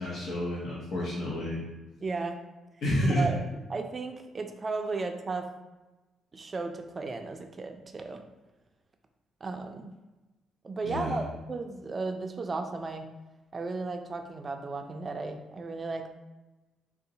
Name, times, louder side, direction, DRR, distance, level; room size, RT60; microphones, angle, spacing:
voice 1, 0.0-1.6 2.8-3.3 10.8-11.2, left 1 dB, 70° left, -5 dB, 0.7 m, -29 dB
voice 2, 2.0-2.4 3.0-3.4 3.7-5.4 6.3-8.2 9.4-9.9 10.6-13.0 13.5-16.1, right 3 dB, 35° right, 5 dB, 0.3 m, -35 dB
3.7 x 2.0 x 2.7 m, 1.1 s
cardioid pair, 90°, 0 cm